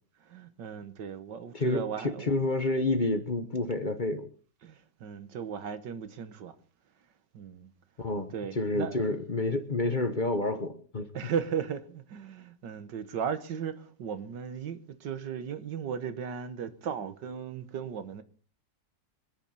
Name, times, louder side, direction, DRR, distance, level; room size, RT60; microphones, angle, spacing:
voice 1, 0.3-2.3 4.6-6.6 7.3-7.7 8.3-9.0 11.1-18.2, right 7 dB, 85° right, 1.9 m, -36 dB
voice 2, 1.5-4.3 8.0-11.1, left 2 dB, 30° left, 1.2 m, -29 dB
25.5 x 10.5 x 4.1 m
omnidirectional pair, 1.9 m